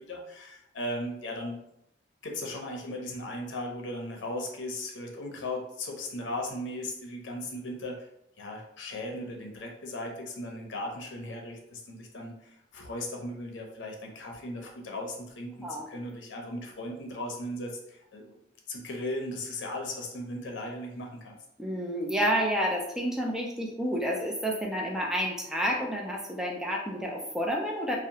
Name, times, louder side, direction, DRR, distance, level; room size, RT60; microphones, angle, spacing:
voice 1, 0.0-1.6 2.2-8.1 8.4-18.4 18.7-21.4, left 1 dB, 85° left, 1 dB, 0.5 m, -37 dB
voice 2, 15.6-15.9 21.6-28.0, equal, 5° right, -1 dB, 0.3 m, -30 dB
2.7 x 2.0 x 2.7 m, 0.80 s
head